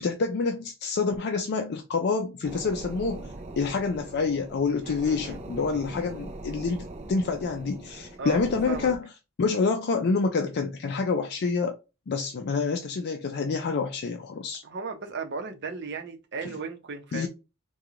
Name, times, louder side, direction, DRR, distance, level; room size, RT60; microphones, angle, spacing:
voice 1, 0.0-9.1 9.4-11.8 12.1-14.6 16.4-16.6 17.1-17.3, left 4 dB, 55° left, 0.4 m, -27 dB
sound 1, 2.4-9.0, right 2 dB, 30° right, 0.4 m, -41 dB
voice 2, 4.8-5.4 8.2-8.4 8.7-8.9 14.6-17.3, right 4 dB, 55° right, 0.7 m, -36 dB
3.7 x 2.3 x 2.9 m
head